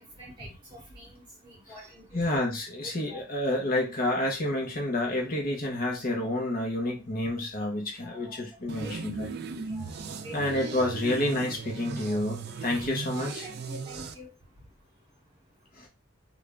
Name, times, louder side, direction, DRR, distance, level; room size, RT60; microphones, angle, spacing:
voice 1, 0.0-2.4 2.8-3.3 7.6-7.7 8.0-8.4 8.8-9.0 9.7-9.9 10.2-10.5 11.1-11.2 12.1-12.5 13.1-14.3, equal, 25° right, -3 dB, 1.8 m, -47 dB
voice 2, 2.1-9.3 10.3-13.5 15.7-15.9, left 1 dB, 45° left, 0 dB, 0.9 m, -29 dB
sound 1, 8.7-14.1, right 4 dB, 55° right, 0.4 m, -37 dB
3.6 x 2.4 x 3.2 m, 0.28 s
head